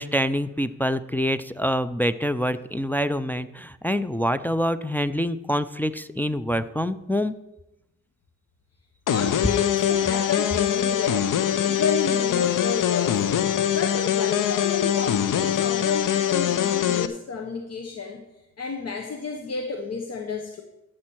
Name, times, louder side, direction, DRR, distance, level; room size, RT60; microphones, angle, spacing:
voice 1, 0.0-7.3 11.7-11.8, equal, 5° left, 10 dB, 0.3 m, -26 dB
sound 1, 9.1-17.1, left 10 dB, 85° left, 0.6 m, -23 dB
voice 2, 9.1-11.3 11.6-18.2 18.6-20.6, left 5 dB, 55° left, 4 dB, 1.0 m, -31 dB
13.0 x 7.5 x 4.5 m, 0.93 s
wide cardioid pair, 105°, 31 cm